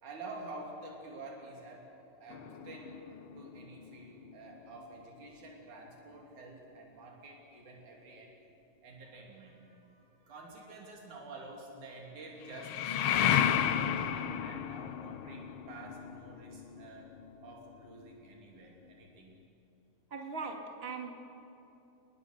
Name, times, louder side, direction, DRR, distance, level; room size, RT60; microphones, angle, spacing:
voice 1, 0.0-1.9 2.2-2.9 3.3-8.3 8.8-17.1 17.4-19.4, right 2 dB, 85° right, -1 dB, 4.4 m, -49 dB
sound 1, 2.3-5.0 12.4-18.1, left 9 dB, 80° left, 1.1 m, -33 dB
voice 2, 20.1-21.1, right 4 dB, 20° right, 3 dB, 2.1 m, -39 dB
29.5 x 20.5 x 6.6 m, 2.9 s
omnidirectional pair, 3.4 m